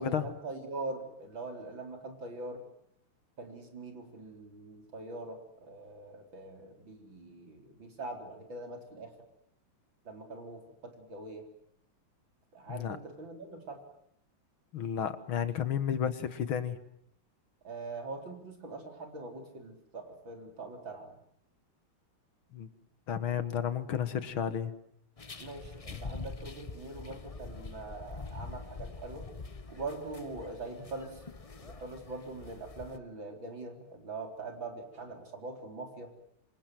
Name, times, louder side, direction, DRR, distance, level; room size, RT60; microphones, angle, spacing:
voice 1, 0.0-2.6 3.4-9.1 10.0-11.5 12.5-13.8 17.6-21.2 25.4-29.3 29.7-31.2 31.6-36.1, right 3 dB, 60° right, 4 dB, 4.9 m, -43 dB
voice 2, 14.7-16.8 22.5-22.7 23.1-24.7 25.9-26.0, left 8 dB, 70° left, 12 dB, 2.3 m, -32 dB
sound 1, 25.2-33.0, left 4 dB, 35° left, 0.5 m, -45 dB
26.5 x 26.5 x 7.8 m, 0.72 s
omnidirectional pair, 2.4 m